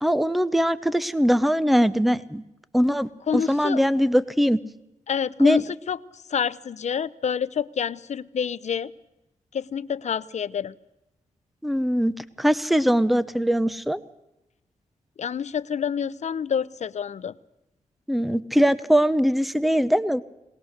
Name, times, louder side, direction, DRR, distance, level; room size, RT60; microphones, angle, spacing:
voice 1, 0.0-2.4 2.7-4.6 5.4-5.6 11.6-14.0 18.1-20.2, equal, ahead, 16 dB, 0.7 m, -21 dB
voice 2, 3.3-3.8 5.1-8.9 9.5-10.7 15.2-17.4, left 7 dB, 60° left, 16 dB, 0.6 m, -28 dB
21.5 x 19.0 x 6.6 m, 0.90 s
cardioid pair, 95°, 13 cm